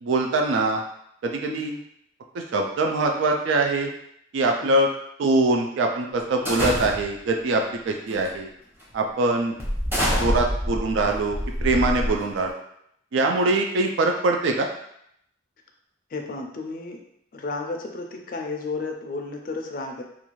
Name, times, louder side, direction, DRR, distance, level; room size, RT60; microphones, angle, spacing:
voice 1, 0.0-0.8 1.2-1.7 2.3-3.9 4.3-4.9 5.2-8.5 8.9-9.6 10.2-12.5 13.1-14.7, right 2 dB, 75° right, 2 dB, 0.3 m, -23 dB
voice 2, 1.5-1.8 4.6-4.7 16.1-17.0 17.3-20.0, left 3 dB, 45° left, 2 dB, 0.4 m, -32 dB
sound 1, 6.5-7.3 8.1-8.3 8.8-8.9 9.6-12.5, equal, 10° right, 0.7 m, -26 dB
2.5 x 2.3 x 3.0 m, 0.73 s
head